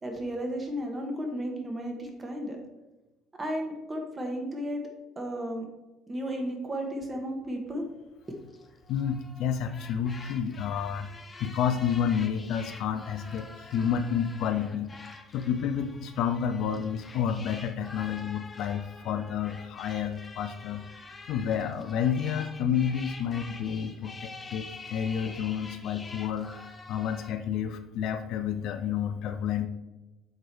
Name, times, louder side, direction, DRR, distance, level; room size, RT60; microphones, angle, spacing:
voice 1, 0.0-2.6 3.4-4.8 5.2-5.6 6.1-7.8, equal, 25° right, 2 dB, 1.7 m, -33 dB
sound 1, 8.3-27.3, left 3 dB, 30° left, 0.9 m, -47 dB
voice 2, 8.9-11.1 11.4-15.0 15.3-20.9 21.3-29.7, left 8 dB, 60° left, 9 dB, 0.5 m, -30 dB
7.3 x 3.8 x 4.6 m, 1.1 s
hypercardioid pair, 60°, 0 cm